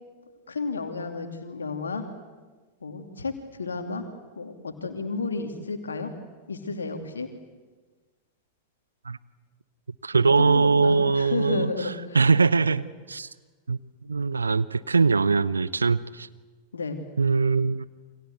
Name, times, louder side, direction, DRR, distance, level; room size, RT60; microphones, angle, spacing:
voice 1, 0.5-2.0 2.8-4.0 4.4-6.1 6.5-7.3 10.1-12.3 12.6-12.8 16.7-17.0, left 4 dB, 75° left, 6 dB, 2.7 m, -32 dB
voice 2, 10.0-12.8 13.1-13.3 13.7-13.8 14.1-16.3 17.2-17.8, right 4 dB, 75° right, 17 dB, 0.8 m, -22 dB
29.0 x 25.5 x 8.0 m, 1.3 s
figure-of-eight pair, 90°, 0 cm